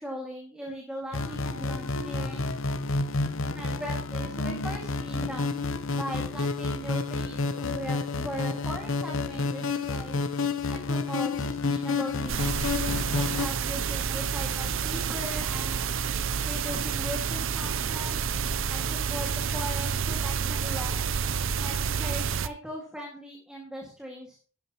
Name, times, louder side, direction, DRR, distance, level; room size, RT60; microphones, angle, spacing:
voice 1, 0.0-2.5 3.5-5.6 5.9-10.2 10.7-12.6 12.9-16.0 16.4-18.2 18.7-21.2 21.6-24.4, equal, 5° right, -2 dB, 2.1 m, -39 dB
sound 1, 1.1-13.5, left 3 dB, 65° left, 0.8 m, -30 dB
sound 2, 12.3-22.5, right 6 dB, 65° right, 0.6 m, -29 dB
12.0 x 12.0 x 3.0 m, 0.41 s
head